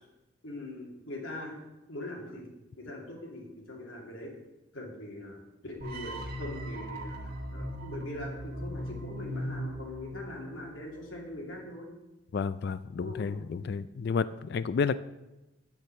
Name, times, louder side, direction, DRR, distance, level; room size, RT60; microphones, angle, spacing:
voice 1, 0.4-1.6 1.9-2.5 2.8-4.3 4.7-11.9 13.0-13.4, left 1 dB, 80° left, -1 dB, 2.8 m, -42 dB
sound 1, 5.8-10.9, equal, 50° right, 1.3 m, -39 dB
voice 2, 12.3-15.0, left 5 dB, 55° left, 16 dB, 0.3 m, -31 dB
7.8 x 6.7 x 8.2 m, 1.0 s
head